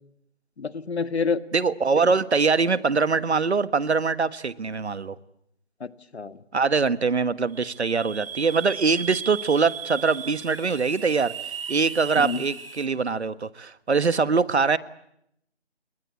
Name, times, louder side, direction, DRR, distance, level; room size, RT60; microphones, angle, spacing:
voice 1, 0.6-1.4 2.0-2.1 5.8-6.4 12.2-12.4, left 5 dB, 70° left, 13 dB, 1.8 m, -28 dB
voice 2, 1.5-5.2 6.5-11.3 11.7-14.8, right 4 dB, 75° right, 16 dB, 1.5 m, -23 dB
sound 1, 7.5-12.9, right 7 dB, 55° right, 2.9 m, -36 dB
29.0 x 22.5 x 8.4 m, 0.76 s
figure-of-eight pair, 165°, 34 cm